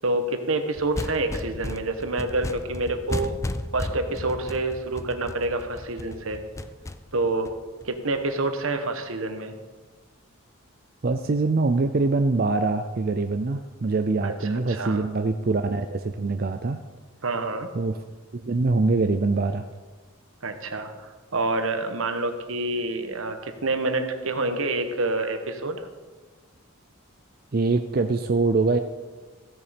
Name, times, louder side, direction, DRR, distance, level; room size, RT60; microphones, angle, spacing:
voice 1, 0.0-3.4 3.7-6.4 7.1-7.5 7.8-9.5 14.2-15.1 17.2-17.7 20.4-25.8, right 2 dB, 80° right, 7 dB, 1.2 m, -27 dB
sound 1, 0.7-8.2, left 1 dB, 15° left, 0.4 m, -35 dB
voice 2, 11.0-16.8 17.7-18.0 18.3-19.7 27.5-28.8, right 3 dB, 45° right, 7 dB, 0.5 m, -24 dB
15.5 x 7.1 x 5.1 m, 1.3 s
head